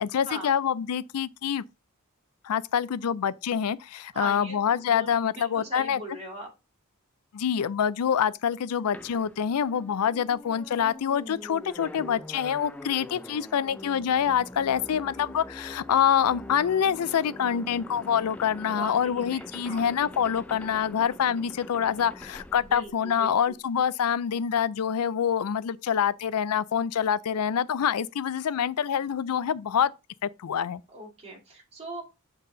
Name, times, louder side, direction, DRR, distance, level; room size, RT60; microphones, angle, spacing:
voice 1, 0.0-1.6 2.4-6.0 7.3-29.9 30.2-30.8, left 8 dB, 85° left, 0.4 m, -26 dB
voice 2, 4.1-6.5 18.6-19.8 22.7-23.6 30.9-32.0, right 1 dB, 30° right, 2.3 m, -40 dB
sound 1, 8.9-23.5, left 1 dB, 5° left, 0.4 m, -44 dB
7.3 x 4.1 x 3.9 m
head